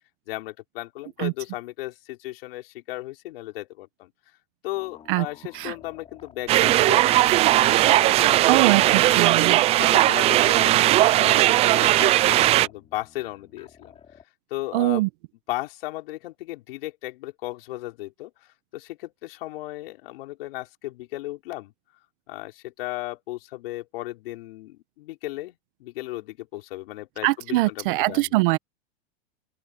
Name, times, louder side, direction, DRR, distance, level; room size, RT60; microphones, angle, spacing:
voice 1, 0.3-4.1 4.6-7.4 7.8-8.8 9.7-13.9 14.5-15.1 15.5-21.7 22.3-28.4, left 17 dB, 65° left, 5.7 m, -36 dB
sound 1, 4.7-10.1 11.7-14.2, left 7 dB, 20° left, 4.5 m, -52 dB
sound 2, 6.5-12.7, right 15 dB, 20° right, 0.4 m, -18 dB
voice 2, 8.5-9.6 14.7-15.1 27.2-28.6, right 20 dB, 55° right, 1.1 m, -22 dB
open air
supercardioid pair, 150°, 31 cm